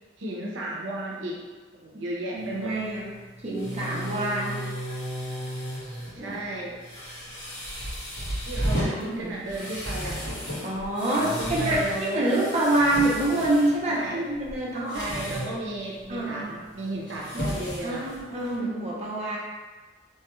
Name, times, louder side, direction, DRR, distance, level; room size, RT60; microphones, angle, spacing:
voice 1, 0.2-1.4 1.7-2.7 6.2-6.8 8.5-10.2 11.2-12.3 13.9-14.2 14.9-18.1, right 1 dB, 85° right, -3 dB, 0.6 m, -34 dB
voice 2, 2.3-3.1 3.4-4.6 6.1-6.4 8.6-9.4 10.6-15.1 16.1-16.5 17.3-17.5 17.8-19.4, right 1 dB, 35° right, -5 dB, 0.6 m, -27 dB
sound 1, 2.4-18.6, equal, 70° left, 1.3 m, -35 dB
3.1 x 2.3 x 3.0 m, 1.3 s
head